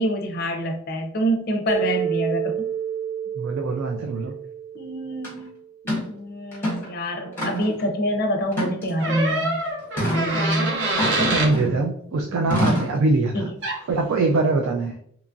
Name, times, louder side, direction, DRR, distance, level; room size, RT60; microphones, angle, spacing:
voice 1, 0.0-2.7 4.7-5.5 6.1-9.6 10.0-10.8 12.2-12.3 13.3-13.5, equal, 45° left, 4 dB, 0.5 m, -26 dB
Mallet percussion, 1.7-5.8, right 9 dB, 20° right, 0.4 m, -30 dB
voice 2, 3.4-4.4 11.1-13.5 13.9-14.9, right 3 dB, 90° right, 3 dB, 0.4 m, -23 dB
sound 1, 5.2-5.3 5.9-6.1 6.5-6.9 7.4-7.8 8.5-9.2 10.0-10.2 11.0-11.8 12.5-13.0, equal, 10° left, 0.8 m, -26 dB
sound 2, 9.0-11.5 13.6-13.8, right 2 dB, 60° right, 0.8 m, -25 dB
2.9 x 2.3 x 2.5 m, 0.67 s
head